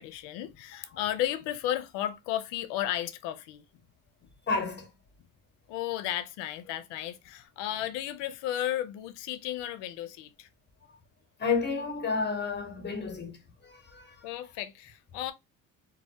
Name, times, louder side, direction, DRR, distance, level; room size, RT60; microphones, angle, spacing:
voice 1, 0.0-3.6 5.7-10.5 14.2-15.3, left 12 dB, 75° left, 0.5 m, -34 dB
voice 2, 4.5-4.9 11.4-13.4 13.6-14.3, left 4 dB, 25° left, 0.9 m, -31 dB
2.2 x 2.1 x 2.7 m
supercardioid pair, 65°, 43 cm